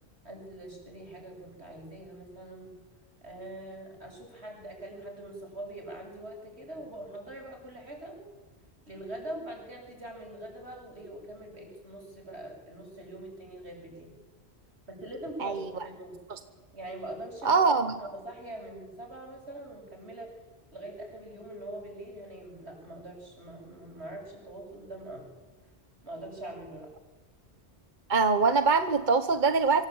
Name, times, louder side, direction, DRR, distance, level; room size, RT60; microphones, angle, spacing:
voice 1, 0.2-2.8 3.2-8.2 8.9-14.1 14.9-16.2 16.7-20.3 20.7-25.3 26.0-26.9, right 1 dB, 90° right, 1 dB, 7.9 m, -43 dB
voice 2, 17.4-17.9 28.1-29.9, right 4 dB, 50° right, 10 dB, 1.3 m, -23 dB
27.0 x 25.0 x 8.8 m, 1.3 s
omnidirectional pair, 1.1 m